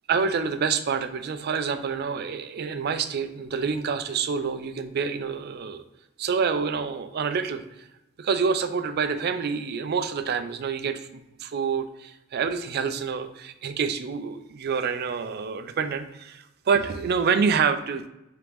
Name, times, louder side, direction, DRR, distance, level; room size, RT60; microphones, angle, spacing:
voice 1, 0.1-5.8 6.2-7.9 8.2-18.1, right 5 dB, 50° right, 9 dB, 0.4 m, -27 dB
3.6 x 3.5 x 3.0 m, 0.90 s
head